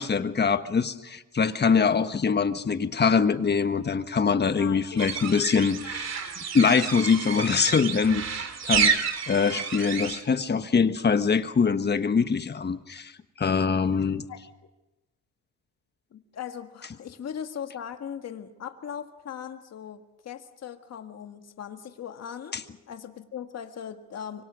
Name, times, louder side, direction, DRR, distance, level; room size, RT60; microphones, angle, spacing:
voice 1, 0.0-6.1 6.5-13.1 13.4-14.2 22.5-22.6, left 5 dB, 35° left, 10 dB, 1.5 m, -24 dB
voice 2, 4.6-5.4 14.3-14.4 16.1-24.4, left 8 dB, 55° left, 6 dB, 1.8 m, -39 dB
sound 1, 5.0-10.2, right 6 dB, 60° right, 2.9 m, -29 dB
25.5 x 24.0 x 6.4 m, 1.0 s
cardioid pair, 90°, 30 cm